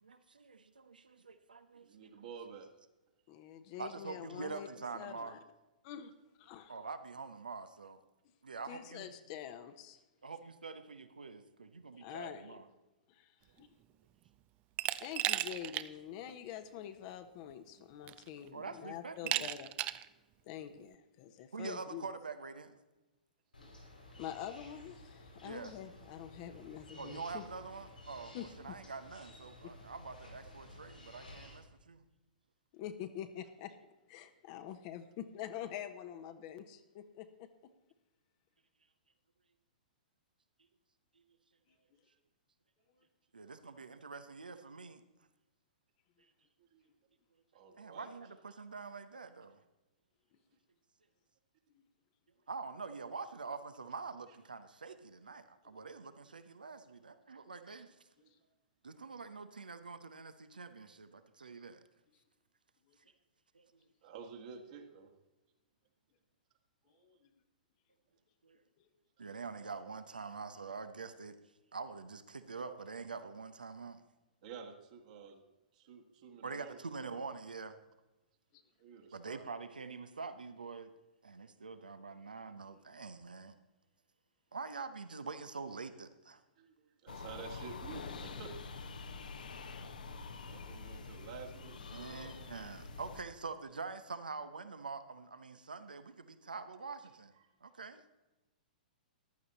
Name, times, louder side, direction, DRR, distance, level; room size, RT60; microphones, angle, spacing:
voice 1, 0.0-2.2 3.8-5.4 6.7-8.0 8.4-9.1 10.2-12.7 18.5-19.5 21.5-22.7 25.4-25.7 27.0-32.0 43.3-45.0 47.8-49.6 52.5-57.9 58.8-61.8 63.5-63.7 68.4-68.6 69.2-71.4 71.7-74.0 76.4-77.8 79.1-80.9 81.2-83.6 84.5-86.4 89.1-89.2 91.9-97.3 97.6-98.0, right 4 dB, 80° right, 11 dB, 0.9 m, -45 dB
voice 2, 1.8-2.7 46.6-46.8 47.5-48.2 55.6-55.7 58.2-58.3 64.0-65.1 66.9-67.2 74.4-75.4 75.7-76.8 78.8-79.4 86.6-88.9 90.4-92.3, right 6 dB, 55° right, 2 dB, 1.9 m, -51 dB
voice 3, 3.3-4.7 4.9-5.4 5.8-6.1 6.4-6.7 8.7-10.0 12.0-12.6 13.1-13.7 15.0-19.7 20.4-22.1 23.6-23.8 24.2-27.5 28.3-28.8 29.6-29.7 32.7-33.8 34.1-37.7 51.7-51.8 62.9-63.0 67.0-67.3 78.5-78.6, left 10 dB, 40° left, 9 dB, 0.9 m, -46 dB
Glass, 14.8-15.9 16.3-16.4 17.5-17.6 18.1-18.5 19.3-20.1, right 15 dB, 30° right, 0.5 m, -35 dB
sound 1, 23.5-31.6, left 1 dB, 90° left, 5.6 m, -54 dB
sound 2, 87.1-93.2, left 4 dB, 70° left, 1.1 m, -46 dB
14.5 x 11.0 x 4.2 m, 1.1 s
figure-of-eight pair, 110°, 5 cm